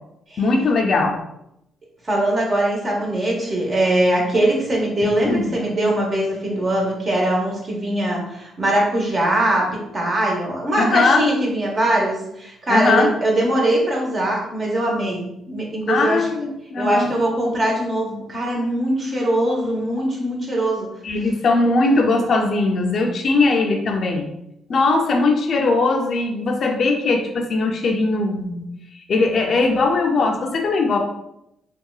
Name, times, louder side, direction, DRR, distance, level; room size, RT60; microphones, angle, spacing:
voice 1, 0.4-1.2 5.2-5.5 10.8-11.2 12.7-13.1 15.9-17.1 21.0-24.3 24.7-28.7 28.9-31.0, left 3 dB, 55° left, 3 dB, 0.4 m, -19 dB
voice 2, 2.0-16.3 16.8-20.9, right 1 dB, 40° right, -1 dB, 1.0 m, -21 dB
3.7 x 2.2 x 2.3 m, 0.82 s
cardioid pair, 90°, 0 cm